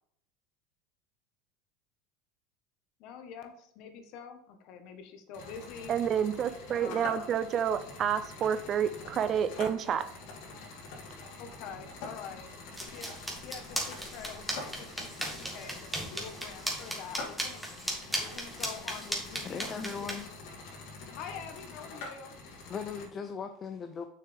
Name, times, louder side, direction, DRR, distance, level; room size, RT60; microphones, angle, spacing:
voice 1, 3.0-5.9 6.8-7.4 11.4-17.6 18.2-20.2 21.1-22.4, left 6 dB, 60° left, 7 dB, 1.3 m, -46 dB
sound 1, 5.3-23.1, left 3 dB, 75° left, 2.9 m, -46 dB
voice 2, 5.9-10.1, right 8 dB, 35° right, 12 dB, 0.6 m, -29 dB
sound 2, 12.8-20.3, right 1 dB, 5° right, 2.1 m, -37 dB
voice 3, 19.4-20.2 22.7-24.0, left 6 dB, 30° left, 7 dB, 0.6 m, -38 dB
6.6 x 6.4 x 3.5 m, 0.70 s
supercardioid pair, 120°, 0 cm